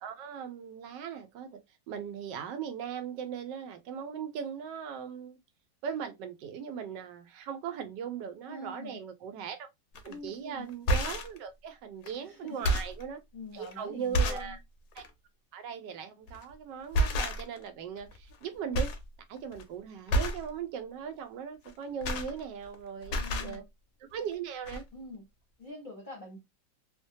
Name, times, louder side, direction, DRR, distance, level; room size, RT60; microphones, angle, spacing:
voice 1, 0.0-1.6 1.9-5.4 5.8-9.7 10.0-13.2 13.5-14.6 14.9-15.0 15.5-18.9 19.3-23.6 24.1-24.8, right 7 dB, 80° right, 1.2 m, -39 dB
voice 2, 8.5-9.0 10.1-10.7 12.2-12.8 13.3-14.6 23.1-23.6 24.9-25.2 25.6-26.4, left 2 dB, 40° left, 0.7 m, -44 dB
sound 1, 10.0-10.1 10.7-11.4 12.0-12.2 12.5-13.0 13.6-13.7 14.1-14.5 14.9-15.1 16.3-16.5 16.9-17.7 18.0-18.5 18.7-19.1 19.4-19.6 20.1-20.5 21.7-22.8 23.0-23.6 24.3-24.4 24.7-24.8, equal, 70° left, 1.1 m, -29 dB
3.1 x 2.1 x 2.6 m
omnidirectional pair, 1.9 m